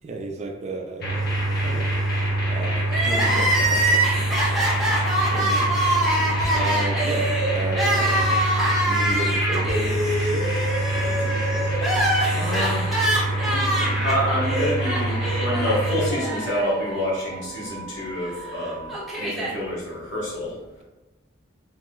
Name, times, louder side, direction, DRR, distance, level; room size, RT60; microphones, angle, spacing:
voice 1, 0.0-1.3 1.6-1.9 2.5-4.2 4.7-5.7 6.5-8.5 8.8-10.6 10.9-11.8, right 3 dB, 35° right, 2 dB, 0.3 m, -33 dB
sound 1, 1.0-16.1, right 1 dB, 50° left, 0.7 m, -25 dB
Crying sobbing, 2.9-17.0 17.3-17.4 18.4-19.5, right 1 dB, ahead, 0.7 m, -24 dB
Wind instrument woodwind instrument, 10.2-19.3, right 5 dB, 75° right, 0.6 m, -39 dB
voice 2, 12.3-13.1 13.5-20.6, left 1 dB, 70° left, -6 dB, 1.2 m, -28 dB
2.9 x 2.0 x 3.7 m, 1.1 s
head